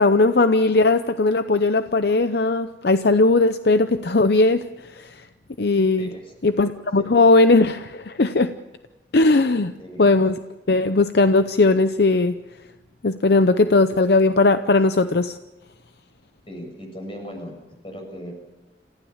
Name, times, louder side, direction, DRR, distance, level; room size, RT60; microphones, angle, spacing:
voice 1, 0.0-4.6 4.9-5.2 5.6-6.1 6.4-8.5 9.1-9.7 10.0-10.4 10.7-12.4 13.0-15.4, left 3 dB, 60° left, 10 dB, 0.7 m, -18 dB
voice 2, 6.0-6.3 7.0-7.1 9.8-10.1 16.5-17.5 17.8-18.3, equal, 30° left, 3 dB, 7.0 m, -37 dB
28.0 x 15.0 x 7.2 m, 1.1 s
head